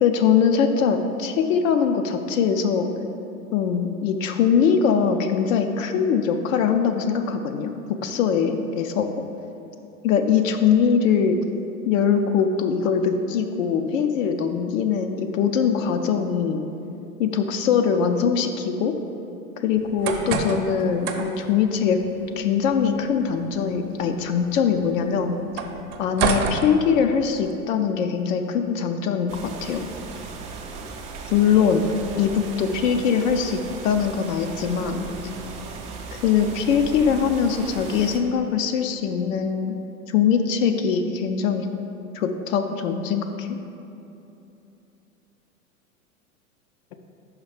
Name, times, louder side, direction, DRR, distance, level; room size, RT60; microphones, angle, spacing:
voice 1, 0.0-2.9 3.5-7.7 8.0-9.1 10.0-11.4 11.9-16.6 17.2-18.9 19.6-22.0 22.4-25.3 26.0-29.9 31.3-31.9 32.2-35.1 36.2-39.8 40.1-41.7 42.1-43.6, left 7 dB, 65° left, 6 dB, 0.6 m, -22 dB
sound 1, 19.8-27.5, right 5 dB, 45° right, 0.7 m, -31 dB
sound 2, 29.3-38.2, right 4 dB, 20° right, 0.3 m, -37 dB
5.5 x 4.8 x 4.9 m, 2.8 s
hypercardioid pair, 100°, 44 cm